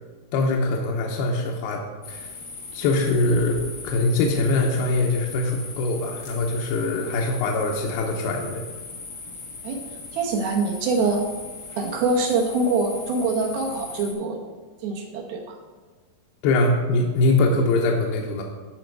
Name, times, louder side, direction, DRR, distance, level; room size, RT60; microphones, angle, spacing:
voice 1, 0.3-1.8 2.1-2.3 2.7-3.6 3.8-8.6 16.4-18.4, left 2 dB, 75° left, 0 dB, 2.6 m, -22 dB
sound 1, 2.0-14.1, left 3 dB, 50° left, 1.4 m, -39 dB
voice 2, 10.1-11.2 11.8-14.4 14.8-15.4, right 3 dB, 75° right, 1 dB, 2.9 m, -24 dB
13.0 x 5.8 x 4.6 m, 1.4 s
omnidirectional pair, 4.6 m